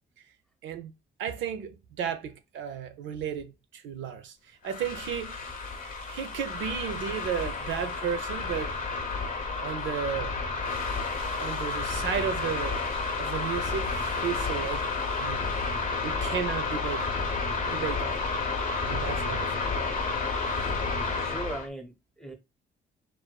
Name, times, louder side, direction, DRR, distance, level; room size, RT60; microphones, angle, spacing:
voice 1, 0.6-0.9 1.2-5.4 6.1-8.8 9.6-10.4 11.4-12.8 13.2-15.5 16.0-17.2 17.6-18.2 18.8-19.5, right 8 dB, 75° right, 0.4 m, -34 dB
sound 1, 4.6-21.7, left 4 dB, 45° left, 0.7 m, -31 dB
voice 2, 19.3-19.6 20.5-20.8 21.2-22.3, right 2 dB, 5° left, 0.6 m, -40 dB
2.5 x 2.2 x 2.2 m
cardioid pair, 90°, 20 cm